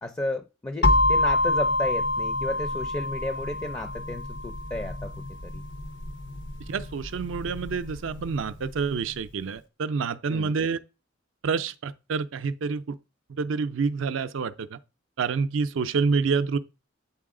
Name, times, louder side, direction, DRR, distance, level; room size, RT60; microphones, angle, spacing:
voice 1, 0.0-5.1 5.4-5.5 10.3-10.6, left 1 dB, 15° left, 0.4 m, -33 dB
sound 1, 0.8-8.7, left 2 dB, 60° left, 0.7 m, -27 dB
voice 2, 6.7-10.8 11.4-13.0 13.4-14.8 15.2-16.6, right 5 dB, 70° right, 0.4 m, -28 dB
8.4 x 3.9 x 3.7 m
head